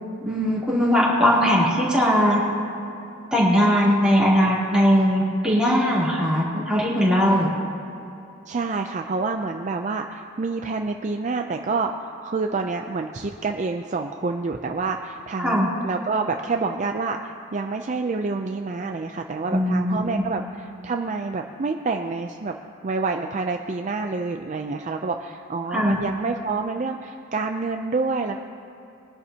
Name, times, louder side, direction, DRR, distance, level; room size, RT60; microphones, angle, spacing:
voice 1, 0.2-2.4 3.3-7.5 15.4-15.7 19.5-20.2 25.7-26.0, equal, 5° right, -8 dB, 3.1 m, -20 dB
voice 2, 8.5-22.5 22.8-28.4, right 4 dB, 35° right, 4 dB, 0.4 m, -28 dB
22.0 x 11.0 x 2.8 m, 2.8 s
head